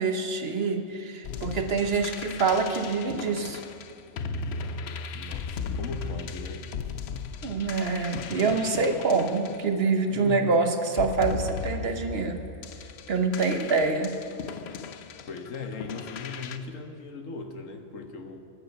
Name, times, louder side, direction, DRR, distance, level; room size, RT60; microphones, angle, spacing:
voice 1, 0.0-3.6 7.4-12.4 13.1-14.1, right 4 dB, 55° right, 6 dB, 1.1 m, -26 dB
sound 1, 1.2-10.3 10.9-16.6, left 5 dB, 60° left, 0.8 m, -37 dB
voice 2, 5.1-6.7 10.1-10.4 15.2-18.4, left 4 dB, 75° left, 6 dB, 1.5 m, -38 dB
10.5 x 9.9 x 8.1 m, 2.9 s
omnidirectional pair, 1.3 m